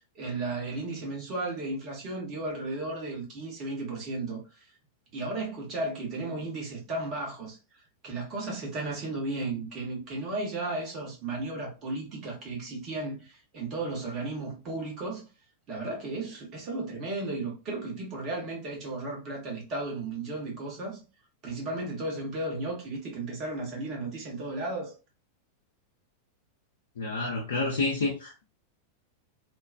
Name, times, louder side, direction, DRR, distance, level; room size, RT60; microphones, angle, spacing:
voice 1, 0.0-4.7 5.1-7.6 8.0-15.3 15.7-21.0 21.4-24.9, right 2 dB, 35° right, 1.3 m, -34 dB
voice 2, 27.0-28.4, left 3 dB, 65° left, 0.6 m, -29 dB
2.9 x 2.3 x 2.3 m
figure-of-eight pair, 90°, 0 cm